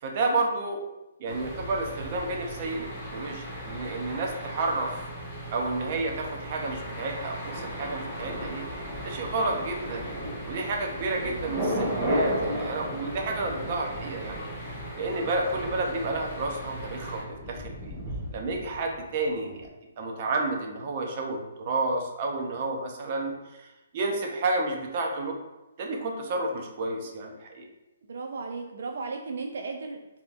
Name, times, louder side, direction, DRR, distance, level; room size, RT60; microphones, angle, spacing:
voice 1, 0.0-0.8 1.2-4.9 5.5-8.7 9.0-10.1 10.5-14.4 15.0-18.0 18.3-19.7 20.0-25.4 25.8-27.7, right 2 dB, 35° right, 1 dB, 0.7 m, -31 dB
sound 1, 1.3-17.2, right 1 dB, 15° left, 1.2 m, -39 dB
Thunder, 7.4-19.3 19.6-19.7, equal, 15° right, 1.0 m, -35 dB
voice 2, 11.1-11.6 28.1-30.2, right 4 dB, 70° right, 3 dB, 0.3 m, -36 dB
4.4 x 2.8 x 2.6 m, 1.0 s
hypercardioid pair, 160°, 0 cm